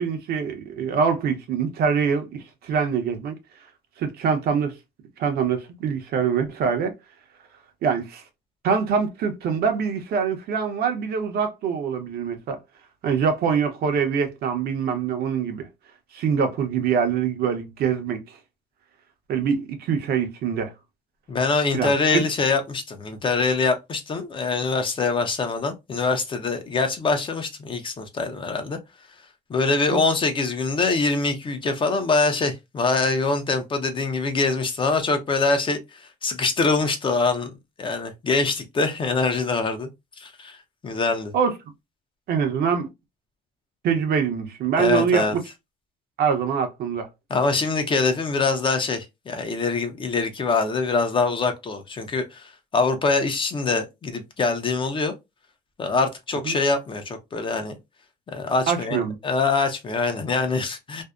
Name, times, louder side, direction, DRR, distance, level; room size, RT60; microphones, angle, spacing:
voice 1, 0.0-3.4 4.0-4.8 5.2-6.9 7.8-8.2 8.6-12.6 13.0-15.7 16.1-18.2 19.3-20.7 21.7-22.2 29.9-30.0 41.3-41.5 42.3-42.9 43.8-45.4 46.2-47.1 56.4-56.5 58.7-59.2, right 6 dB, 65° right, 0.7 m, -24 dB
voice 2, 21.3-28.8 29.5-37.5 37.8-39.9 40.2-40.6 40.8-41.3 44.8-45.4 47.3-55.1 55.8-57.8 58.3-61.0, left 3 dB, 30° left, 0.6 m, -24 dB
2.6 x 2.1 x 2.3 m
cardioid pair, 110°, 17 cm